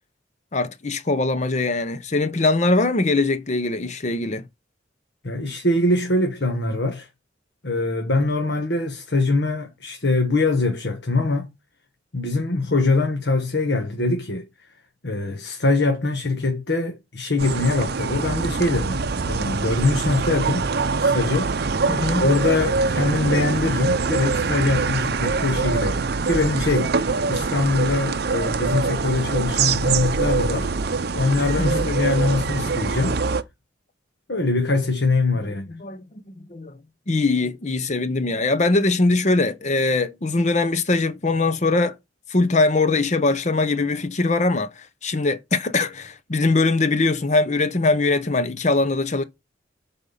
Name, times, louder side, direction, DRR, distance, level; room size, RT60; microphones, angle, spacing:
voice 1, 0.5-4.4 21.9-22.3 31.6-31.9 35.4-36.1 36.5-36.7 37.1-41.9 42.3-49.2, left 3 dB, 40° left, 0.8 m, -22 dB
voice 2, 5.2-7.1 7.6-11.5 12.1-14.4 15.0-20.7 21.0-21.5 22.2-30.7 31.1-33.2 34.3-35.7, left 2 dB, 60° left, 1.4 m, -23 dB
sound 1, 17.4-33.4, right 4 dB, 55° right, 0.6 m, -24 dB
8.8 x 4.2 x 5.7 m
head